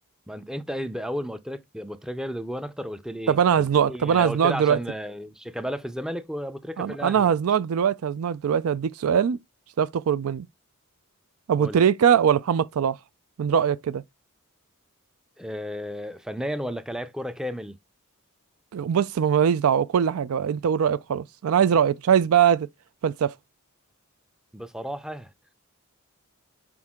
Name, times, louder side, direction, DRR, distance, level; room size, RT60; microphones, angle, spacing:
voice 1, 0.3-7.3 11.6-11.8 15.4-17.8 24.5-25.3, equal, 5° right, 0.5 m, -33 dB
voice 2, 3.3-4.8 6.8-9.4 9.8-10.5 11.5-13.0 13.4-14.0 18.7-22.7 23.0-23.3, right 8 dB, 70° right, 0.4 m, -22 dB
6.1 x 4.4 x 3.6 m
head